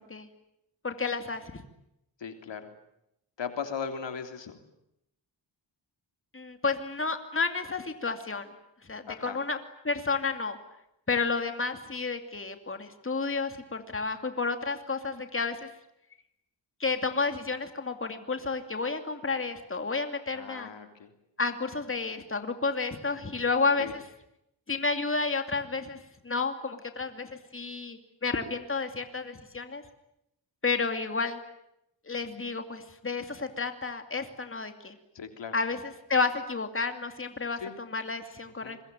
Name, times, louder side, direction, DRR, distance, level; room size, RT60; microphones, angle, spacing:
voice 1, 0.8-1.6 6.3-8.5 8.8-9.6 9.8-10.6 11.1-15.7 16.8-20.7 21.4-24.0 24.7-29.8 30.6-31.4 32.1-34.9 35.5-38.8, left 4 dB, 30° left, 7 dB, 2.6 m, -31 dB
voice 2, 2.2-2.7 3.4-4.6 9.1-9.4 20.3-21.1 23.8-23.9 35.1-35.6 37.6-37.7 38.6-38.8, left 6 dB, 75° left, 6 dB, 3.3 m, -38 dB
26.0 x 22.5 x 9.1 m, 0.82 s
cardioid pair, 75°, 44 cm